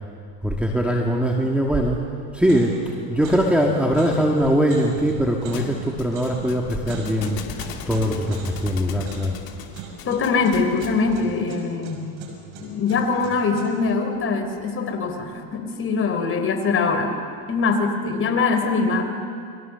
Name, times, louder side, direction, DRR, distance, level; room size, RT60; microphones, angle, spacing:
voice 1, 0.4-2.0 2.3-7.4 7.9-9.4, equal, 5° right, 0 dB, 1.9 m, -21 dB
sound 1, 1.8-2.1 2.4-13.9, right 5 dB, 65° right, 6.2 m, -40 dB
Thump thud, 5.5-11.1, left 7 dB, 50° left, 2.8 m, -36 dB
voice 2, 10.0-12.1 12.6-17.1 17.5-19.0, left 4 dB, 30° left, 5 dB, 3.8 m, -23 dB
30.0 x 22.5 x 6.9 m, 2.2 s
supercardioid pair, 135°, 44 cm